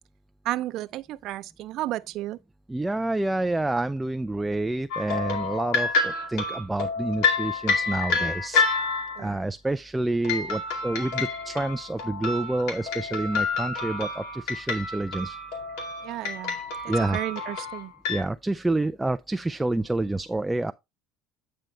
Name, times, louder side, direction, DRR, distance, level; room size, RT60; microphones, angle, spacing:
voice 1, 0.4-2.4 9.2-9.3 16.0-17.9, right 15 dB, 60° right, 0.6 m, -33 dB
voice 2, 2.7-8.8 9.2-15.4 16.9-17.2 18.1-20.7, right 2 dB, 10° right, 0.4 m, -28 dB
sound 1, 4.9-9.3 10.2-18.2, left 4 dB, 75° left, 2.2 m, -28 dB
8.9 x 5.2 x 3.2 m
supercardioid pair, 105°, 0 cm